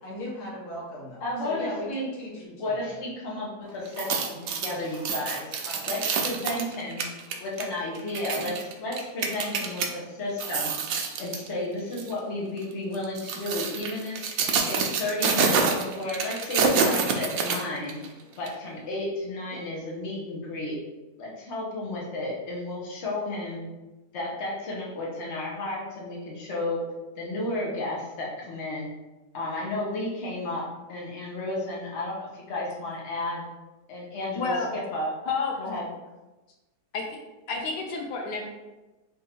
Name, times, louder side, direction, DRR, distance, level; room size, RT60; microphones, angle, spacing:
voice 1, 0.0-2.9 3.6-3.7 5.6-5.8 8.4-8.5 19.5-19.6, left 1 dB, 70° left, -4 dB, 1.6 m, -38 dB
voice 2, 1.2-2.1 2.6-5.5 5.8-7.1 7.4-10.8 11.2-14.2 14.7-18.0 18.4-20.8 21.2-23.7 24.1-26.8 27.2-28.9 29.3-33.4 33.9-35.1 35.6-35.9, left 2 dB, 45° left, -4 dB, 1.2 m, -32 dB
sound 1, 3.9-9.9 10.3-11.5 11.9-12.1 12.9-18.1 18.5-18.6, right 5 dB, 85° right, 0.6 m, -27 dB
voice 3, 34.4-34.7 35.3-35.5 36.9-37.1 37.5-38.5, left 4 dB, 90° left, 1 dB, 1.3 m, -29 dB
3.6 x 2.7 x 4.2 m, 1.1 s
omnidirectional pair, 1.8 m